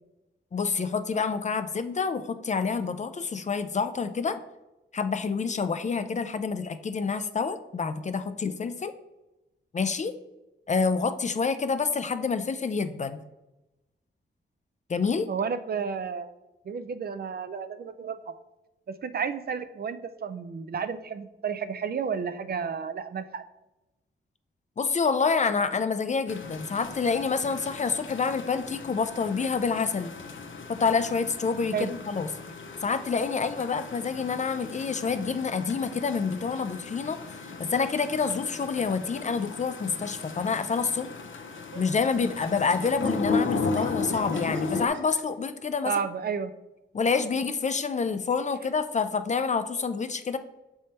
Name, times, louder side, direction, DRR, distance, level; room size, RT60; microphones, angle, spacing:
voice 1, 0.5-4.4 4.9-8.9 9.7-10.1 10.7-13.2 14.9-15.3 24.8-30.1 30.7-32.3 32.8-37.2 37.6-41.1 41.8-45.9 46.9-50.4, left 5 dB, 35° left, 11 dB, 0.4 m, -27 dB
voice 2, 15.3-16.3 16.7-18.4 18.9-23.4 31.7-31.9 45.8-46.5, right 6 dB, 50° right, 11 dB, 0.4 m, -32 dB
sound 1, 26.3-44.9, left 4 dB, 75° left, 0.6 m, -35 dB
Laughter, 40.7-40.9 41.6-45.2, right 3 dB, 70° right, 1.0 m, -48 dB
6.5 x 3.5 x 4.2 m, 0.98 s
wide cardioid pair, 120°, 20 cm